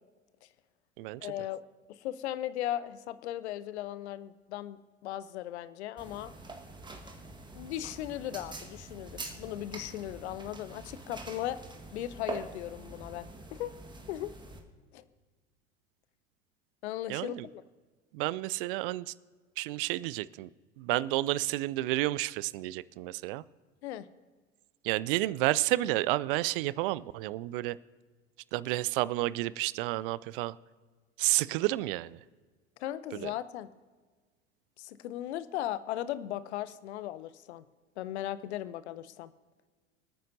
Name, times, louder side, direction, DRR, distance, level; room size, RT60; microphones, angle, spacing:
voice 1, 1.2-1.6 1.9-6.3 7.5-11.6 11.9-13.7 14.1-14.3 14.9-15.0 16.8-17.6 23.8-24.1 32.8-33.7 34.8-37.6 38.0-39.3, left 13 dB, 65° left, 16 dB, 0.7 m, -37 dB
sound 1, 6.0-14.6, right 2 dB, 10° right, 1.4 m, -45 dB
voice 2, 17.1-17.5 18.1-19.1 19.6-20.5 20.8-23.4 24.8-27.8 28.5-30.6 31.2-32.2 33.2-33.3, right 17 dB, 50° right, 20 dB, 0.4 m, -30 dB
25.5 x 9.4 x 2.7 m, 1.4 s
figure-of-eight pair, 80°, 36 cm